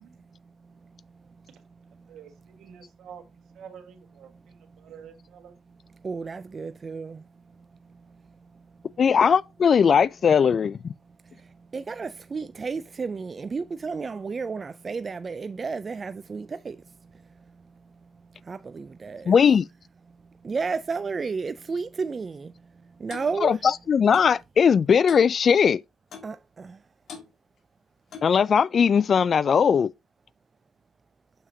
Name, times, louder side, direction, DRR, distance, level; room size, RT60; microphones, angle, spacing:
voice 1, 0.2-1.5 1.8-2.2 4.8-4.9 6.0-9.0 11.0-19.3 20.1-23.6 26.2-26.8, right 4 dB, 35° right, 0.3 m, -34 dB
voice 2, 2.1-5.6 7.1-7.2, right 8 dB, 75° right, 1.5 m, -48 dB
voice 3, 9.0-10.9 19.3-19.6 23.4-23.6 23.9-25.8 28.2-29.9, left 6 dB, 50° left, 0.3 m, -19 dB
Clock, 23.1-23.3 24.1-24.3 25.1-25.3 26.1-26.4 27.1-27.3 28.1-28.4, left 6 dB, 65° left, 1.8 m, -42 dB
6.9 x 5.6 x 2.7 m
cardioid pair, 90°, 0 cm